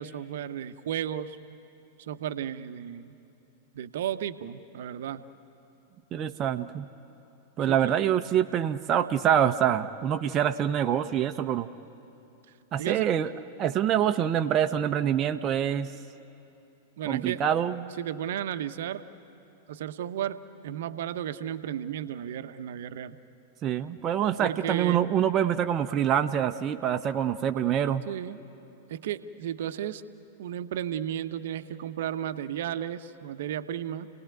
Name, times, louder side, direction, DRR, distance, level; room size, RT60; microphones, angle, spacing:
voice 1, 0.0-1.4 2.0-3.1 3.7-5.2 7.7-8.0 12.8-13.1 17.0-17.4 18.0-19.0 19.7-20.4 20.6-23.2 24.4-25.0 28.1-28.4 28.9-30.0 30.4-34.1, right 10 dB, 60° right, 11 dB, 0.8 m, -33 dB
voice 2, 6.1-6.9 7.6-11.7 12.7-13.3 13.6-15.9 17.1-17.8 23.6-28.0, right 9 dB, 30° right, 6 dB, 0.7 m, -25 dB
29.5 x 18.5 x 9.5 m, 2.8 s
figure-of-eight pair, 95°, 0 cm